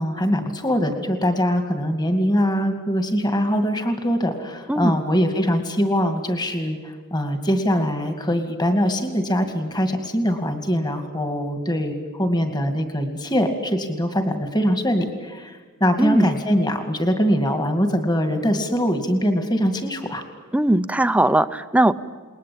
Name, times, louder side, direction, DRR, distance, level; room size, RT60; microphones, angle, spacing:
voice 1, 0.0-20.2, equal, 20° left, 7 dB, 2.3 m, -22 dB
voice 2, 20.5-21.9, right 1 dB, 5° right, 12 dB, 0.7 m, -19 dB
29.0 x 20.5 x 8.7 m, 1.5 s
head